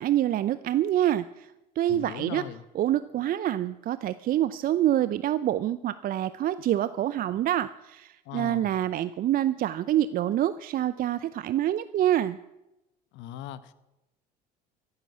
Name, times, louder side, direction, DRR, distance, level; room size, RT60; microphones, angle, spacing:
voice 1, 0.0-2.4 2.7-12.4, right 12 dB, 45° right, 15 dB, 0.6 m, -26 dB
voice 2, 1.9-2.6 8.2-8.8 13.1-13.7, left 11 dB, 60° left, 15 dB, 1.0 m, -39 dB
14.0 x 11.5 x 7.2 m, 0.95 s
hypercardioid pair, 70°, 21 cm